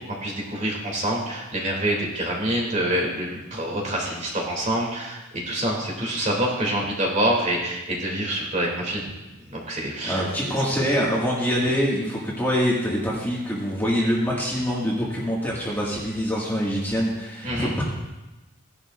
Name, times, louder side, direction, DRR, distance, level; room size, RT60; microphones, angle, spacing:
voice 1, 0.1-9.0 9.5-10.2 10.6-10.7 17.4-17.7, right 1 dB, 35° right, -2 dB, 2.7 m, -26 dB
voice 2, 10.1-17.8, equal, 10° left, -6 dB, 1.9 m, -25 dB
16.5 x 11.0 x 2.5 m, 1.1 s
head